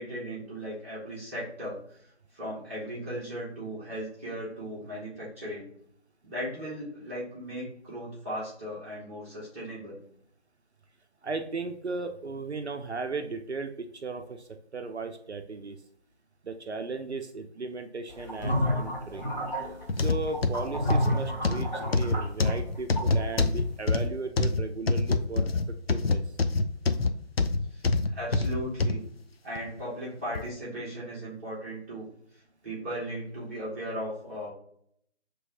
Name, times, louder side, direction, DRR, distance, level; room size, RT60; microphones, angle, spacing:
voice 1, 0.0-2.0 2.3-5.7 6.2-10.0 27.7-27.8 28.1-29.0 29.4-32.1 32.6-34.5, equal, 10° right, -10 dB, 1.3 m, -37 dB
voice 2, 11.2-15.8 16.4-19.3 20.0-25.6 25.9-26.4, right 3 dB, 70° right, 6 dB, 0.6 m, -36 dB
sound 1, 18.2-23.4, equal, 40° left, 1.9 m, -30 dB
sound 2, 19.9-29.0 29.5-29.7 30.3-30.4, left 3 dB, 60° left, 0.5 m, -26 dB
5.9 x 3.1 x 2.6 m, 0.67 s
figure-of-eight pair, 160°, 34 cm